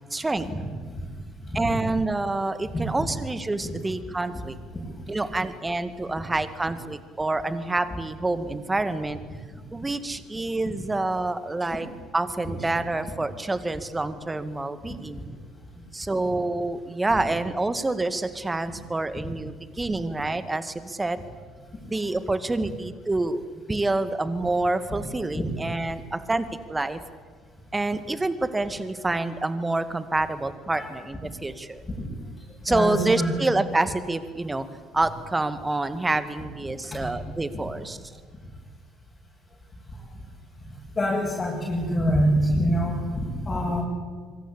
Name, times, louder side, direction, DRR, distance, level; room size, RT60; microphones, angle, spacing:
voice 1, 0.1-0.5 1.5-4.6 5.1-9.2 9.7-11.9 12.1-15.2 15.9-21.2 21.9-23.4 23.7-27.0 27.7-31.8 32.6-34.6 34.9-38.0, right 2 dB, 15° right, 12 dB, 2.0 m, -27 dB
voice 2, 1.5-1.8 2.7-2.8 3.6-3.8 12.4-12.5 17.2-17.3 18.6-18.7 25.3-25.5 30.7-30.9 32.0-32.1 32.7-33.5 36.9-37.0 37.5-37.6 41.0-43.8, equal, 25° left, -4 dB, 7.7 m, -26 dB
25.5 x 24.5 x 8.5 m, 1.5 s
figure-of-eight pair, 55°, 0 cm